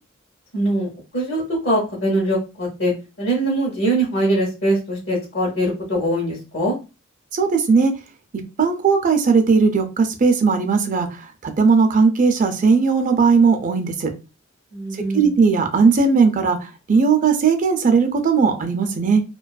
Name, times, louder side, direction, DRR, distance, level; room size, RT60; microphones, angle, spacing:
voice 1, 0.5-0.9 1.1-2.9 3.2-6.8 14.7-15.3, right 1 dB, 55° left, -4 dB, 0.8 m, -22 dB
voice 2, 7.3-7.9 8.6-11.1 11.4-14.1 15.1-16.6 16.9-19.2, right 5 dB, 40° right, 6 dB, 0.4 m, -17 dB
2.4 x 2.3 x 2.2 m, 0.29 s
head